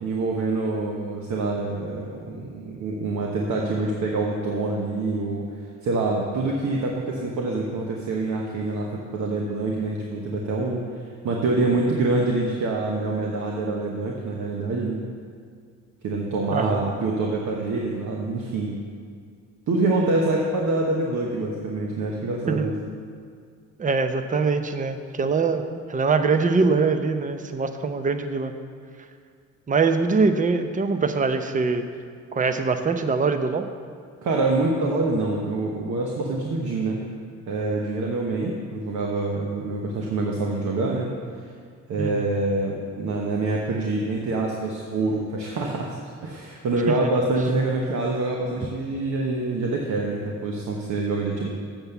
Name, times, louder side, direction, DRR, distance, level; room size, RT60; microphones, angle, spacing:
voice 1, 0.0-5.5 5.8-10.9 11.2-15.0 16.0-18.8 19.7-22.7 34.2-37.0 37.5-41.1 41.9-46.0 46.2-51.5, right 2 dB, 70° right, -1 dB, 1.2 m, -26 dB
voice 2, 16.5-16.9 22.5-22.7 23.8-25.6 25.9-28.5 29.7-31.9 32.3-33.7 42.0-42.3 47.0-47.1, right 4 dB, 25° right, 8 dB, 0.7 m, -23 dB
7.9 x 7.1 x 6.8 m, 2.1 s
cardioid pair, 90°, 30 cm